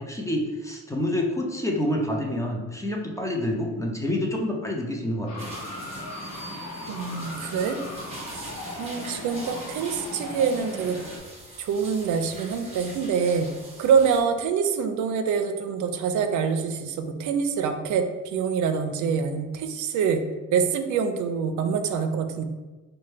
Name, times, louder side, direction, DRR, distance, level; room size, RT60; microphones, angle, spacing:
voice 1, 0.0-5.5, left 1 dB, 10° left, 0 dB, 0.6 m, -28 dB
sound 1, 5.3-11.2, left 1 dB, 60° left, 0.9 m, -37 dB
sound 2, 5.4-14.2, right 1 dB, 20° right, 0.9 m, -43 dB
voice 2, 6.9-7.8 8.8-11.0 11.6-13.5 13.8-20.2 20.5-22.4, right 6 dB, 75° right, 7 dB, 0.4 m, -25 dB
4.2 x 2.2 x 3.2 m, 1.2 s
cardioid pair, 90°, 30 cm